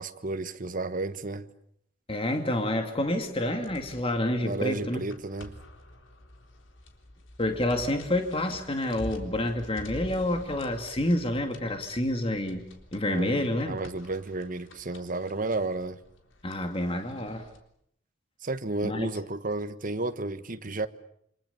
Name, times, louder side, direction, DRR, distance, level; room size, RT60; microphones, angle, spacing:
voice 1, 0.0-1.5 4.4-5.5 13.1-13.4 13.7-16.0 18.4-20.9, right 2 dB, 45° right, 1.3 m, -32 dB
voice 2, 2.1-5.0 7.4-12.6 12.9-13.8 16.4-17.5 18.8-19.1, left 1 dB, 30° left, 2.5 m, -28 dB
sound 1, 2.8-17.6, left 1 dB, 80° left, 3.7 m, -47 dB
28.0 x 26.5 x 7.1 m
head